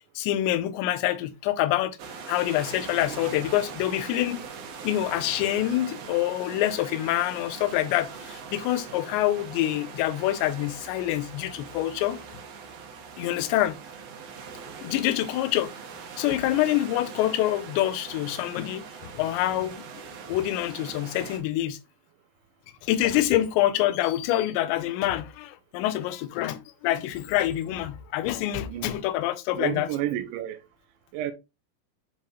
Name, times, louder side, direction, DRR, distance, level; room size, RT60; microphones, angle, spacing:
voice 1, 0.2-2.0 2.3-4.5 4.8-12.2 13.2-13.8 14.8-15.7 16.2-19.8 20.3-21.8 22.8-29.9, left 14 dB, 85° left, 2.8 m, -26 dB
sound 1, 2.0-21.4, right 5 dB, 65° right, 2.6 m, -41 dB
voice 2, 2.9-3.2 28.7-29.0 29.5-30.6 31.1-31.3, right 13 dB, 85° right, 3.2 m, -31 dB
7.6 x 4.8 x 2.9 m
omnidirectional pair, 5.2 m